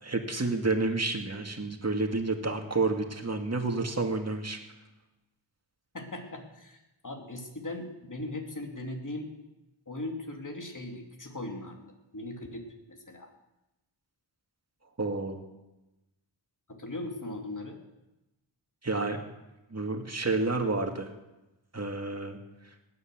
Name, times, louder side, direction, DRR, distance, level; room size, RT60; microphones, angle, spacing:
voice 1, 0.0-4.6 15.0-15.4 18.8-19.2 19.7-21.1 21.7-22.4, right 3 dB, 30° right, 4 dB, 2.2 m, -30 dB
voice 2, 5.9-9.3 9.9-11.8 12.1-13.3 16.7-17.8, left 2 dB, 40° left, 3 dB, 2.8 m, -39 dB
18.0 x 9.7 x 7.8 m, 0.99 s
wide cardioid pair, 70°, 48 cm